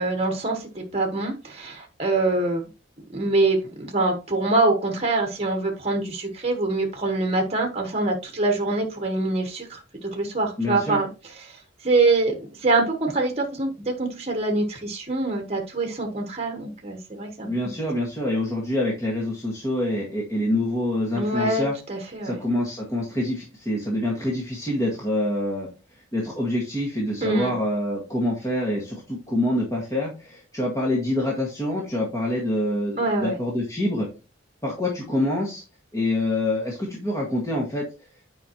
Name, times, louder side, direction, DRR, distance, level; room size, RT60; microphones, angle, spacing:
voice 1, 0.0-2.6 3.1-11.1 11.4-17.5 21.1-22.4 27.2-27.5 33.0-33.3, right 2 dB, 30° right, 4 dB, 1.2 m, -24 dB
voice 2, 10.6-11.0 17.5-21.7 22.2-25.7 26.1-34.1 34.6-35.6 35.9-37.8, left 1 dB, 15° left, -3 dB, 1.8 m, -26 dB
9.3 x 5.1 x 2.9 m, 0.31 s
head